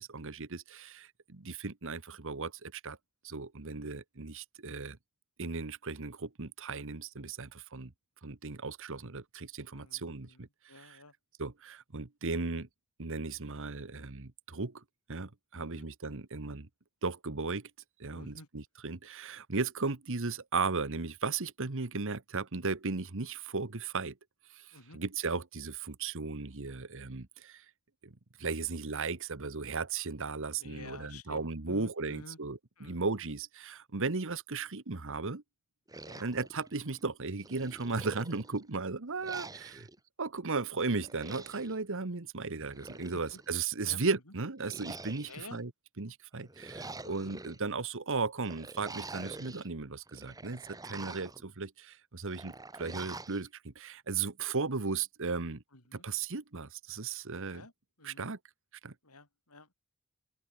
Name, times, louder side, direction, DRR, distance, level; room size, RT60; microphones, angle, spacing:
voice 1, 0.0-3.0 3.2-5.0 5.4-7.9 8.2-11.0 11.4-12.7 13.0-14.8 15.1-16.7 17.0-17.7 18.0-24.2 24.5-27.6 28.0-35.4 36.2-39.9 40.2-45.7 46.0-55.6 55.9-57.7 58.0-58.4 58.8-58.9, right 4 dB, 60° right, 1.3 m, -36 dB
voice 2, 3.6-4.0 9.7-11.1 15.5-15.9 18.1-18.5 24.7-25.0 30.6-32.4 32.8-33.1 36.0-36.3 43.1-43.4 43.8-44.0 45.2-45.6 55.7-56.1 57.4-57.7 58.0-58.3 59.0-59.7, left 3 dB, 85° left, 7.3 m, -51 dB
sound 1, 35.9-37.0 37.4-38.7 39.2-40.0 41.0-41.8 42.5-43.5 44.6-45.6 46.3-47.6 48.4-49.7 50.1-51.4 52.3-53.4, right 3 dB, 15° right, 2.3 m, -46 dB
open air
head